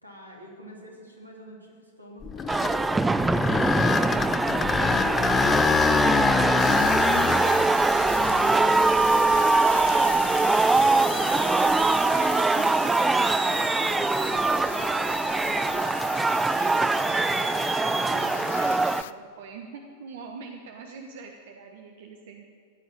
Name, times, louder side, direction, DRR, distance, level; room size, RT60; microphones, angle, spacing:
voice 1, 0.0-4.0 9.9-10.3 13.4-15.9, equal, 90° right, -1 dB, 3.0 m, -48 dB
sound 1, 2.2-10.3 10.9-11.0 11.7-11.8 15.4-15.7, left 6 dB, 20° left, 0.7 m, -26 dB
sound 2, 2.5-19.0, right 3 dB, 10° right, 0.4 m, -23 dB
voice 2, 4.8-5.6 8.9-13.6 16.5-22.4, right 5 dB, 55° right, 3 dB, 1.3 m, -44 dB
sound 3, 6.6-19.1, left 12 dB, 55° left, 0.4 m, -36 dB
15.0 x 9.3 x 9.1 m, 2.3 s
figure-of-eight pair, 90°, 0 cm